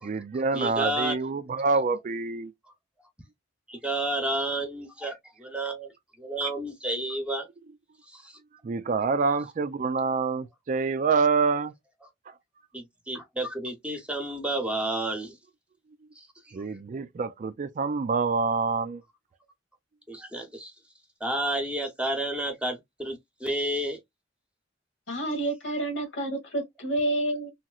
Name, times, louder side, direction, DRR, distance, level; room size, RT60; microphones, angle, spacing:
voice 1, 0.0-2.5 8.6-11.7 12.3-12.4 16.5-19.0, right 4 dB, 40° right, 0.4 m, -26 dB
voice 2, 0.5-1.2 3.7-5.9 6.2-7.5 8.1-8.4 12.7-15.4 16.2-16.5 20.1-20.7 21.2-24.0, right 1 dB, 5° right, 0.9 m, -31 dB
voice 3, 25.1-27.5, right 1 dB, 80° left, 1.5 m, -29 dB
3.1 x 2.9 x 2.3 m
head